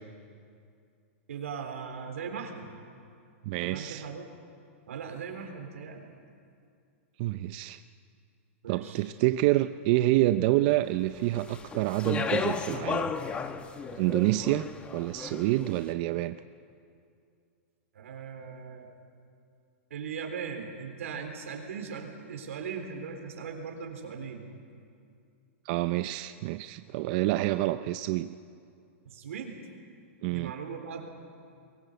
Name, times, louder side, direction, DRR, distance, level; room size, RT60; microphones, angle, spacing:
voice 1, 1.3-2.7 3.6-4.2 4.9-6.1 8.6-9.0 17.9-18.9 19.9-24.5 29.1-29.6 30.3-31.1, right 6 dB, 85° right, 4 dB, 4.0 m, -39 dB
voice 2, 3.4-4.0 7.2-7.8 8.7-13.1 13.9-16.4 25.6-28.3 30.2-30.5, right 16 dB, 40° right, 11 dB, 0.5 m, -27 dB
Speech, 11.3-15.7, left 5 dB, 15° left, 1.0 m, -34 dB
23.0 x 19.0 x 8.1 m, 2.3 s
supercardioid pair, 155°, 7 cm